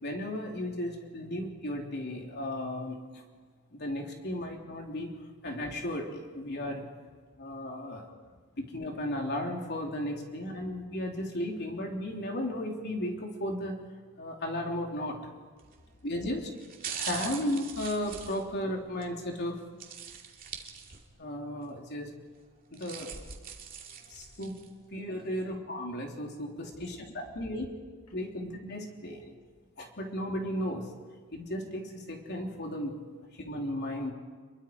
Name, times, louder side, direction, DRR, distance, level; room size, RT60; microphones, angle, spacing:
voice 1, 0.0-3.2 3.7-5.1 5.4-6.9 7.4-8.0 8.6-13.8 14.2-15.2 16.0-16.5 16.8-19.6 21.2-22.1 22.7-23.1 24.1-24.6 24.9-27.7 28.1-29.2 29.8-30.9 31.3-33.0 33.3-34.1, left 1 dB, 50° left, 1 dB, 3.5 m, -35 dB
voice 2, 7.9-8.4 10.6-10.7 16.3-16.4 17.4-17.5 23.2-23.5 25.3-25.6 26.7-28.4 29.2-29.5 31.1-31.2, left 1 dB, 85° left, 3 dB, 2.4 m, -53 dB
sound 1, 15.6-15.9 16.6-19.1 19.8-21.3 21.6-21.7 22.5-24.7 25.2-25.3, right 7 dB, 40° right, 2.5 m, -42 dB
27.5 x 22.5 x 4.8 m, 1.5 s
head